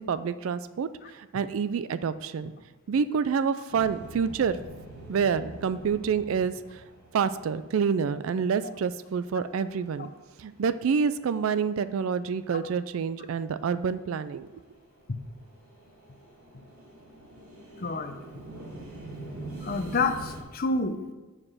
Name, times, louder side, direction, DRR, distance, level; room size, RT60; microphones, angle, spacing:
voice 1, 0.0-2.5 2.9-4.6 5.1-6.8 7.1-10.1 10.4-14.5, right 6 dB, 65° right, 14 dB, 0.3 m, -28 dB
sound 1, 3.7-11.3 11.6-12.6 13.0-20.4, right 2 dB, 85° right, 2.0 m, -45 dB
voice 2, 17.8-18.2 19.6-21.1, left 3 dB, 40° left, 7 dB, 0.6 m, -28 dB
7.6 x 4.9 x 6.2 m, 1.2 s
head